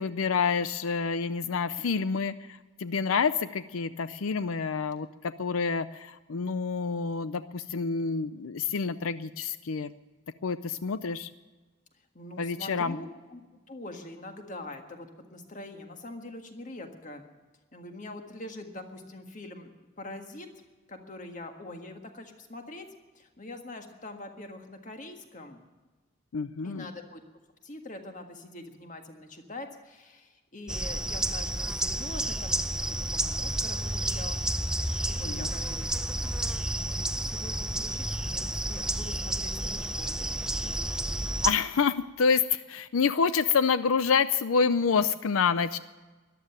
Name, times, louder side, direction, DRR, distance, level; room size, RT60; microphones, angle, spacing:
voice 1, 0.0-9.9 10.4-11.3 12.4-13.0 26.3-26.9 35.2-35.5 41.4-45.8, left 5 dB, 90° left, 13 dB, 0.5 m, -28 dB
voice 2, 12.1-13.4 13.7-17.2 17.7-19.7 20.0-20.5 20.9-22.8 23.1-25.6 26.6-27.2 27.6-34.4 35.0-36.4 36.7-40.8, left 2 dB, 40° left, 5 dB, 1.7 m, -44 dB
sound 1, 30.7-41.5, right 1 dB, 5° right, 0.5 m, -31 dB
14.0 x 11.5 x 8.8 m, 1.3 s
head